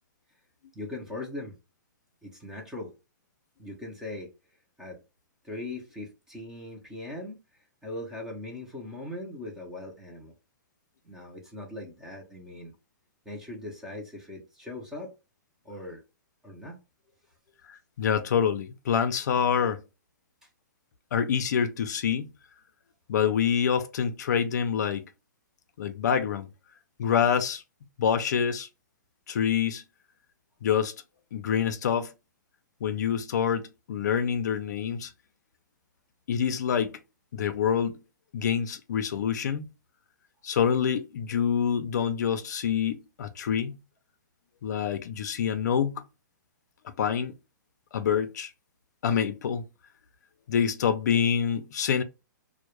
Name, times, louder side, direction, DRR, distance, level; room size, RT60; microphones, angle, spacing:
voice 1, 0.7-1.6 2.2-2.9 3.6-4.3 4.8-5.0 5.4-10.3 11.0-12.7 13.3-15.1 15.6-16.0 16.4-16.8 20.4-20.5, left 2 dB, 5° right, 0.4 m, -40 dB
voice 2, 17.7-19.8 21.1-22.3 23.1-25.0 25.8-26.5 27.0-27.6 28.0-28.7 29.3-29.8 30.6-30.9 31.3-32.1 32.8-35.1 36.3-37.0 37.3-38.0 38.3-39.7 40.4-43.8 44.6-46.0 46.8-47.4 47.9-48.5 49.0-49.6 50.5-52.0, left 7 dB, 60° left, 0.4 m, -26 dB
2.1 x 2.0 x 2.9 m
hypercardioid pair, 165°, 10 cm